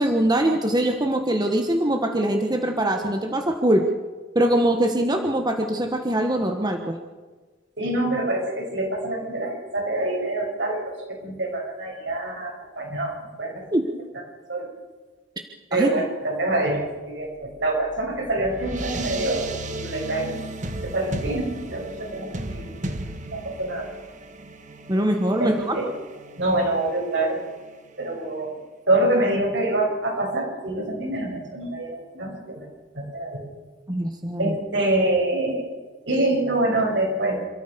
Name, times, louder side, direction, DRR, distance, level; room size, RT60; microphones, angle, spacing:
voice 1, 0.0-3.9 4.3-7.0 13.7-13.9 15.7-16.0 24.9-25.8 33.9-34.6, right 1 dB, 25° right, 4 dB, 1.5 m, -22 dB
voice 2, 7.8-13.5 14.5-14.6 15.7-20.3 20.8-22.3 22.5-22.7 23.3-23.9 25.4-25.9 26.4-27.4 28.0-28.5 28.9-32.7 32.9-33.4 34.4-35.6 36.1-37.5, right 2 dB, 75° right, 0 dB, 7.0 m, -25 dB
sound 1, 17.6-28.3, right 2 dB, 45° right, 1.7 m, -36 dB
27.5 x 14.0 x 7.0 m, 1.3 s
head